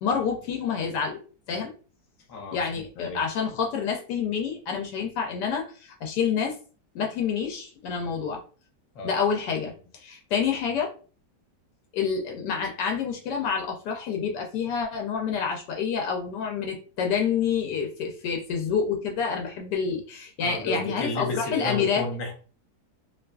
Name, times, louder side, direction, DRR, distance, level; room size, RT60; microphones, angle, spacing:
voice 1, 0.0-1.2 1.5-1.7 2.5-6.6 6.9-8.4 9.0-10.9 11.9-22.0, left 6 dB, 80° left, 1 dB, 1.2 m, -28 dB
voice 2, 20.4-22.3, left 2 dB, 55° left, 1 dB, 1.1 m, -32 dB
2.7 x 2.4 x 2.2 m, 0.38 s
omnidirectional pair, 1.8 m